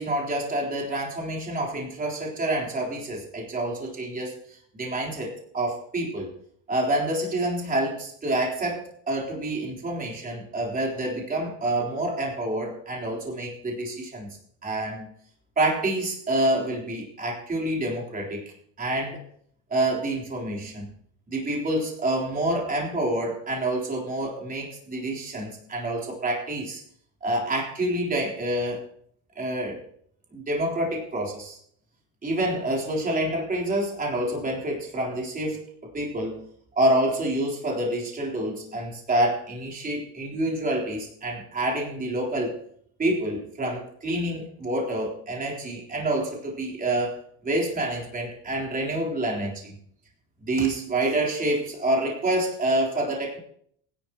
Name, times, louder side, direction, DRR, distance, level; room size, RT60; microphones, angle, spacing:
voice 1, 0.0-6.3 6.7-15.1 15.6-18.4 18.8-19.2 19.7-20.9 21.3-26.8 27.2-28.8 29.4-29.8 30.3-31.6 32.2-35.6 35.9-36.5 36.8-42.6 43.0-47.2 47.4-49.8 50.4-53.4, right 1 dB, 25° right, -3 dB, 3.8 m, -27 dB
18.5 x 11.0 x 3.0 m, 0.66 s
cardioid pair, 130°, 36 cm